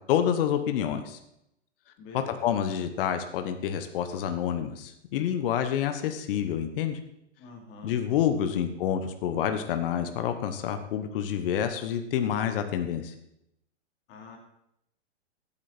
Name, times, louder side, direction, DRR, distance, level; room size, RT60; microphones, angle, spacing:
voice 1, 0.1-1.2 2.4-7.0 7.8-13.1, left 9 dB, 50° left, 8 dB, 1.4 m, -28 dB
voice 2, 2.0-2.4 7.4-8.0 8.4-8.6 14.1-14.4, left 3 dB, 35° left, 0 dB, 3.7 m, -46 dB
15.0 x 8.8 x 4.5 m, 0.81 s
hypercardioid pair, 130°, 35 cm